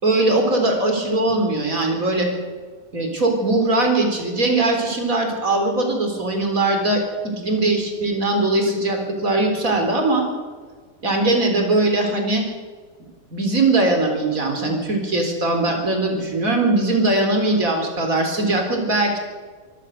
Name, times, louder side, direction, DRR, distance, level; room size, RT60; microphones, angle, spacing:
voice 1, 0.0-2.3 2.9-10.3 11.0-12.4 13.3-19.2, right 2 dB, 60° right, 3 dB, 4.5 m, -20 dB
24.5 x 17.5 x 6.6 m, 1.5 s
omnidirectional pair, 1.6 m